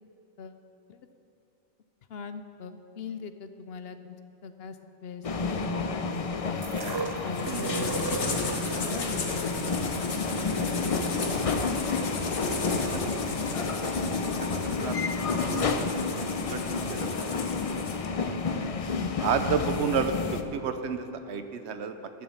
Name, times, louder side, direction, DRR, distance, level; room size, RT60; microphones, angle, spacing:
voice 1, 2.1-4.2 4.4-6.0 6.4-6.6 7.2-8.1 8.7-9.8 18.9-19.2, left 6 dB, 65° left, 9 dB, 0.9 m, -40 dB
sound 1, 5.2-20.4, left 4 dB, 40° left, 0.5 m, -30 dB
sound 2, 6.6-12.7 13.5-13.6, right 3 dB, 35° right, 0.4 m, -38 dB
sound 3, 7.3-18.1, left 3 dB, 85° left, 1.5 m, -35 dB
voice 2, 11.2-11.6 12.9-13.3 14.0-15.0 15.3-18.1 19.2-22.1, right 6 dB, 75° right, 9 dB, 1.0 m, -33 dB
13.0 x 7.5 x 7.1 m, 2.7 s
omnidirectional pair, 1.2 m